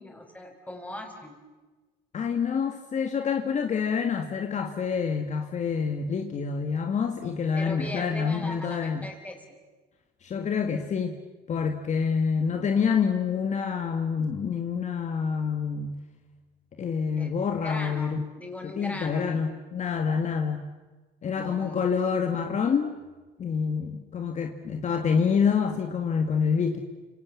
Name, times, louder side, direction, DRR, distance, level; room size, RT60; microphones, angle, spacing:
voice 1, 0.0-1.4 7.5-9.4 17.2-17.3 17.6-19.4 21.4-21.9, left 1 dB, 10° left, 3 dB, 5.8 m, -39 dB
voice 2, 2.1-9.1 10.2-11.2 11.5-16.0 16.8-18.3 18.6-20.7 21.2-22.9 23.4-26.8, left 6 dB, 45° left, 5 dB, 1.9 m, -27 dB
29.5 x 27.0 x 7.3 m, 1.3 s
cardioid pair, 110°, 17 cm